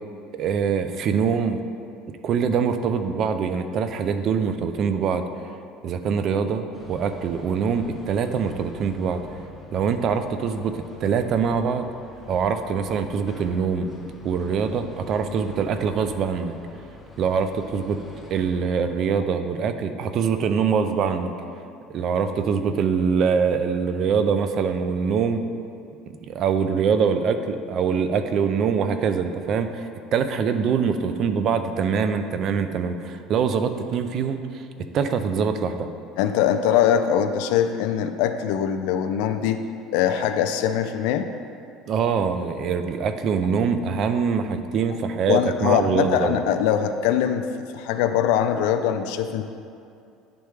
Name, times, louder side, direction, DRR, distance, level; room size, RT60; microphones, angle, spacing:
voice 1, 0.3-1.6 2.2-5.2 5.8-9.4 9.7-11.9 12.3-13.9 14.2-16.5 17.2-18.0 18.3-21.3 21.9-25.4 26.1-34.6 34.9-35.9 41.9-46.4, right 6 dB, 45° right, 8 dB, 0.4 m, -24 dB
sound 1, 6.7-19.2, left 3 dB, 10° left, 0.7 m, -45 dB
voice 2, 36.2-39.6 39.9-41.3 45.3-47.5 47.7-49.4, left 9 dB, 80° left, 8 dB, 0.3 m, -22 dB
10.0 x 3.4 x 3.2 m, 2.5 s
cardioid pair, 145°, 0 cm